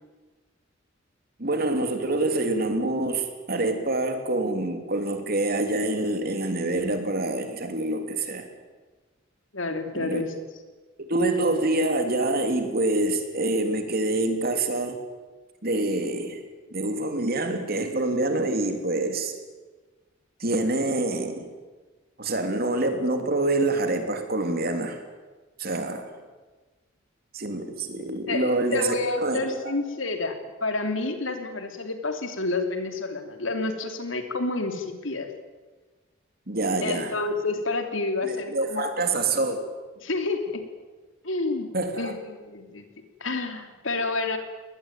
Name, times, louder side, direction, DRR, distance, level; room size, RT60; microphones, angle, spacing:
voice 1, 1.4-8.5 9.9-10.2 11.0-15.0 15.6-16.4 16.7-19.3 20.4-21.5 22.2-25.1 25.6-26.1 27.3-29.7 36.5-37.1 38.2-39.7 41.7-42.1, right 2 dB, 50° right, 6 dB, 3.2 m, -26 dB
voice 2, 9.5-10.3 28.3-35.3 36.8-39.0 40.0-40.7 41.2-41.7 42.0-42.9 43.2-44.4, left 3 dB, 80° left, 6 dB, 3.1 m, -29 dB
22.5 x 19.5 x 9.2 m, 1.3 s
head